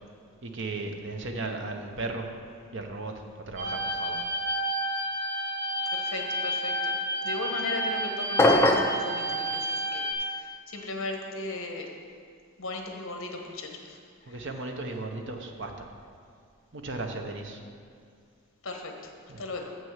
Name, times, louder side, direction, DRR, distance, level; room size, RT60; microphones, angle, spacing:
voice 1, 0.4-2.3 2.7-3.1 3.5-4.2 14.3-15.9 16.7-17.6 19.3-19.4, right 2 dB, 55° right, 4 dB, 0.8 m, -35 dB
sound 1, 3.6-10.1, equal, 25° right, 2.1 m, -30 dB
voice 2, 5.9-7.0 7.2-11.9 12.6-14.0 14.3-14.4 18.6-18.9 19.4-19.8, left 2 dB, 60° left, 3 dB, 1.1 m, -37 dB
sound 2, 8.4-9.0, left 1 dB, 10° left, 0.4 m, -20 dB
7.1 x 6.3 x 7.3 m, 2.3 s
head